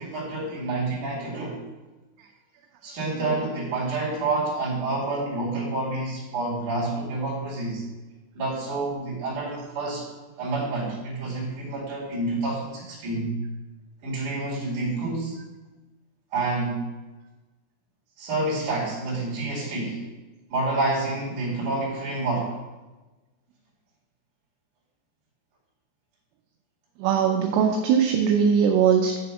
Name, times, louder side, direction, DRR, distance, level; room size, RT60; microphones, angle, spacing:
voice 1, 0.0-1.6 2.8-7.8 8.3-10.1 10.4-13.4 14.0-15.4 16.3-16.8 18.2-20.0 20.5-22.6, right 2 dB, 50° right, -6 dB, 3.0 m, -28 dB
voice 2, 27.0-29.2, right 7 dB, 85° right, 3 dB, 2.9 m, -20 dB
7.9 x 3.5 x 5.8 m, 1.2 s
omnidirectional pair, 5.9 m